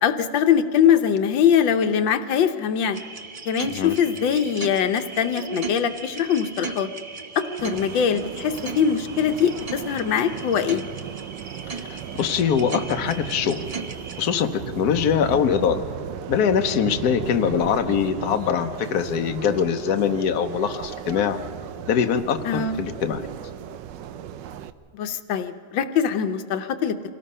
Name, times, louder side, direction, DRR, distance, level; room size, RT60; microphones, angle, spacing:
voice 1, 0.0-3.0 3.5-6.9 7.4-10.8 22.4-22.8 25.0-26.9, left 8 dB, 85° left, 8 dB, 1.6 m, -22 dB
sound 1, 2.9-14.2, right 4 dB, 50° right, 0.4 m, -37 dB
sound 2, 7.6-24.7, right 10 dB, 75° right, 1.3 m, -36 dB
voice 2, 11.7-13.6 14.2-15.8 16.3-21.4 21.9-23.3, left 7 dB, 60° left, 6 dB, 1.3 m, -23 dB
26.0 x 18.0 x 5.5 m, 2.2 s
omnidirectional pair, 2.0 m